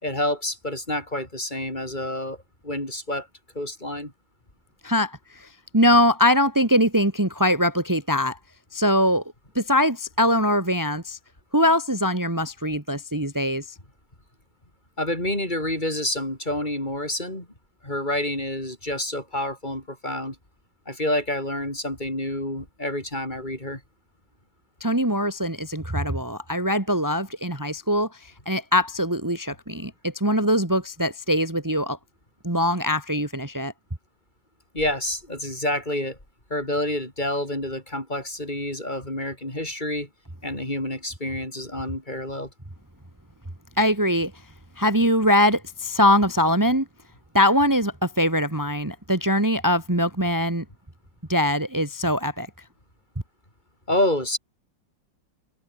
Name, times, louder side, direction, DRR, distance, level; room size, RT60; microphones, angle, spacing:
voice 1, 0.0-2.4 2.6-3.3 3.5-4.1 15.0-17.5 17.8-20.4 20.9-23.8 34.7-36.2 36.5-40.1 40.4-42.5 53.9-54.4, left 1 dB, 25° left, 6.8 m, -28 dB
voice 2, 4.8-5.5 5.7-8.4 8.7-9.2 9.5-11.2 11.5-13.7 24.8-32.0 32.4-33.7 43.8-44.3 44.8-46.9 47.3-50.6 51.3-52.5, equal, 10° right, 2.3 m, -22 dB
omnidirectional pair, 2.0 m